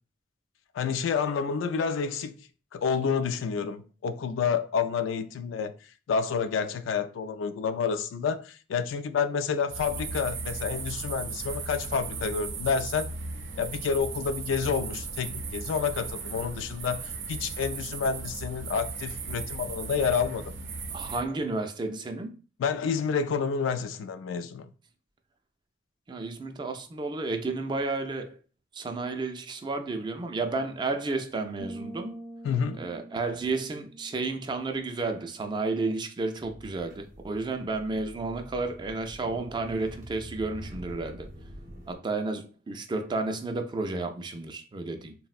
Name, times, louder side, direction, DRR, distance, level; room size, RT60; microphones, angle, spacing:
voice 1, 0.7-2.4 2.7-5.7 6.1-13.1 13.6-20.5 22.6-24.7 32.4-32.8, left 6 dB, 85° left, 0.3 m, -29 dB
sound 1, 9.7-21.2, right 4 dB, 85° right, 0.5 m, -36 dB
voice 2, 20.9-22.4 26.1-28.4 28.7-32.2 32.8-41.3 41.9-45.1, right 3 dB, 25° right, 0.3 m, -32 dB
sound 2, 31.6-35.3, right 1 dB, 45° left, 0.6 m, -45 dB
sound 3, 36.4-42.0, equal, 45° right, 0.7 m, -46 dB
3.4 x 2.0 x 2.4 m
head